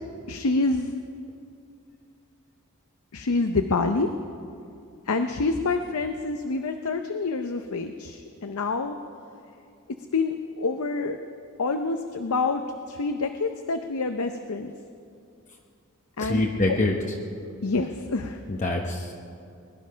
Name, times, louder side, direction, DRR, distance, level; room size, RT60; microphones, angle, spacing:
voice 1, 0.3-0.9 3.1-4.1 5.1-8.9 10.1-11.2 11.6-14.7 16.2-16.5 17.6-18.4, left 3 dB, 75° left, 7 dB, 0.7 m, -27 dB
voice 2, 16.2-17.0 18.5-19.1, left 2 dB, 35° left, 1 dB, 0.9 m, -25 dB
21.0 x 11.5 x 5.6 m, 2.4 s
head